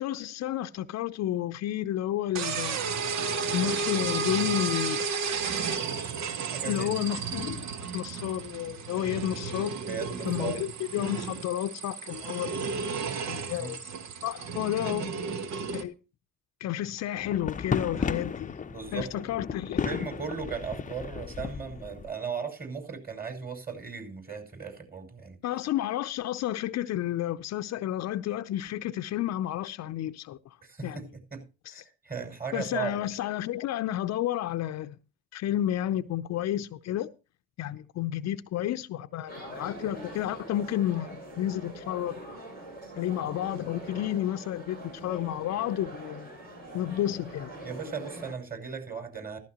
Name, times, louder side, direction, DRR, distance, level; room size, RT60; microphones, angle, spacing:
voice 1, 0.0-2.8 3.5-5.0 5.7-5.8 6.7-7.6 7.9-9.8 10.2-12.6 13.3-13.8 14.2-15.1 15.7-15.9 16.6-18.5 18.9-20.1 25.4-30.4 30.8-31.0 31.7-31.8 32.5-35.0 35.3-37.1 37.6-42.2 43.0-46.3 46.7-47.5, left 12 dB, 60° left, 0.7 m, -31 dB
sound 1, 2.4-15.8, right 5 dB, 60° right, 1.2 m, -33 dB
voice 2, 6.4-6.9 9.9-10.7 13.5-13.7 14.9-15.0 18.7-19.2 19.8-25.4 30.6-31.0 31.3-31.4 31.7-33.0 47.6-49.4, right 6 dB, 30° right, 5.8 m, -37 dB
sound 2, 17.2-22.1, left 5 dB, 25° left, 0.7 m, -34 dB
sound 3, 39.3-48.3, right 1 dB, 80° right, 7.9 m, -43 dB
14.5 x 14.0 x 3.0 m
hypercardioid pair, 55°, 31 cm